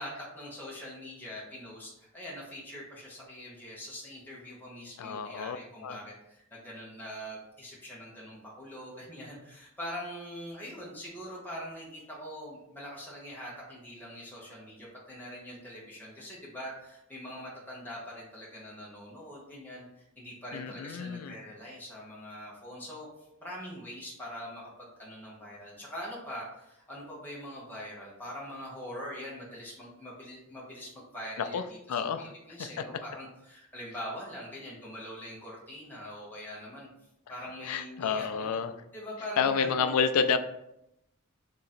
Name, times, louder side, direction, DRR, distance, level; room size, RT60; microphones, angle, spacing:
voice 1, 0.0-19.9 20.2-23.1 23.4-31.8 32.2-36.9 37.3-38.5 38.9-40.0, equal, 10° left, -5 dB, 0.9 m, -43 dB
voice 2, 5.0-5.6 5.8-6.0 20.5-21.4 31.4-31.6 31.9-32.3 32.6-32.8 37.6-38.7 39.4-40.4, left 6 dB, 90° left, 10 dB, 0.4 m, -29 dB
3.7 x 2.8 x 4.2 m, 0.83 s
head